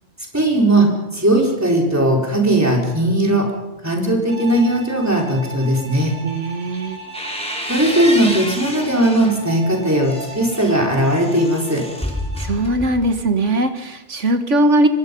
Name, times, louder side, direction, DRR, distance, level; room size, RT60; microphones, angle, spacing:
voice 1, 0.3-3.5 3.8-6.2 7.7-11.9, right 1 dB, 10° right, -1 dB, 4.6 m, -18 dB
Bowed string instrument, 4.3-12.6, right 3 dB, 50° right, 7.3 m, -38 dB
voice 2, 6.2-7.0 12.4-14.9, right 1 dB, 65° right, 7 dB, 2.1 m, -19 dB
sound 1, 6.7-9.4 9.9-13.2, equal, 5° left, 3.7 m, -30 dB
24.0 x 24.0 x 5.5 m, 0.98 s
omnidirectional pair, 1.3 m